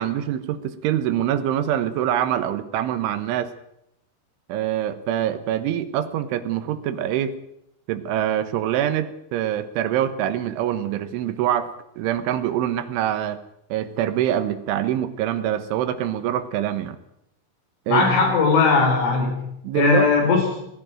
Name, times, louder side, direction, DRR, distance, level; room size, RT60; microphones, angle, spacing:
voice 1, 0.0-3.5 4.5-7.4 7.9-13.4 13.7-17.0 17.9-18.3 19.6-20.1, right 11 dB, 75° right, 11 dB, 3.6 m, -25 dB
voice 2, 17.9-19.5 19.7-20.7, left 4 dB, 70° left, 3 dB, 6.8 m, -19 dB
19.5 x 15.5 x 9.0 m, 0.78 s
omnidirectional pair, 5.7 m